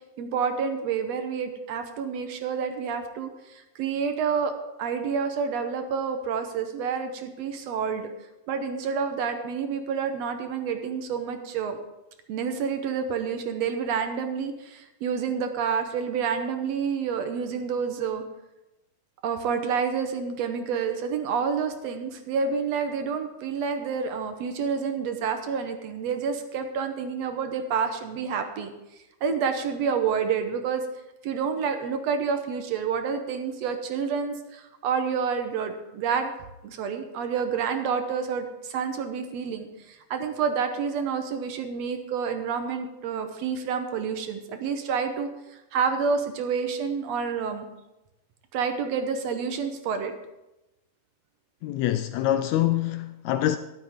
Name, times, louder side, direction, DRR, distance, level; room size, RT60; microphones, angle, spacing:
voice 1, 0.2-4.5 4.8-8.1 8.5-11.8 12.3-18.2 19.2-28.7 29.2-30.8 31.2-36.3 36.6-45.3 45.7-47.7 48.5-50.1, right 6 dB, 70° right, 1.9 m, -28 dB
voice 2, 51.6-53.6, left 12 dB, 85° left, 1.6 m, -25 dB
13.5 x 11.5 x 3.6 m
omnidirectional pair, 3.6 m